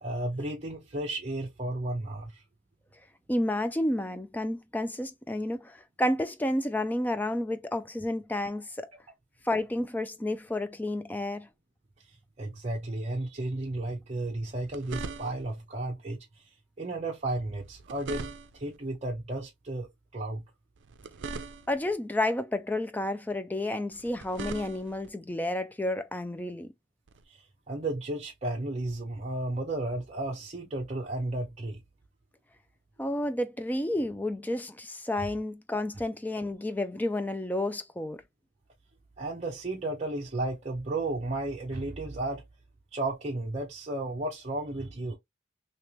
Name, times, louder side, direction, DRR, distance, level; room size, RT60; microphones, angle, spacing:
voice 1, 0.0-2.4 12.4-16.2 16.8-20.4 27.3-27.4 27.7-31.8 39.2-42.4 42.9-45.2, right 2 dB, 35° right, 0.8 m, -33 dB
voice 2, 3.3-8.9 9.4-11.5 21.7-26.7 33.0-38.2, left 1 dB, 10° left, 0.3 m, -31 dB
sound 1, 14.4-15.6 17.6-18.8 20.8-21.9 23.9-25.1 27.1-27.2, right 4 dB, 80° right, 0.5 m, -41 dB
3.2 x 2.9 x 2.9 m
head